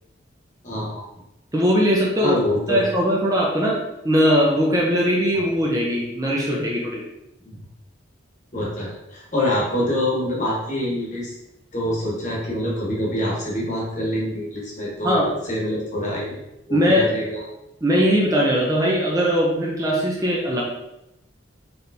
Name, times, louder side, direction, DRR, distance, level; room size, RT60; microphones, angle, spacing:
voice 1, 0.6-1.1 2.1-2.9 7.4-7.6 8.5-11.3 11.7-16.4 16.7-17.4, left 1 dB, 40° left, -4 dB, 1.2 m, -25 dB
voice 2, 1.5-2.3 2.7-3.8 4.0-7.0 15.0-15.3 16.7-17.1 17.8-20.6, equal, 20° right, -3 dB, 0.6 m, -20 dB
4.2 x 3.4 x 2.7 m, 0.88 s
head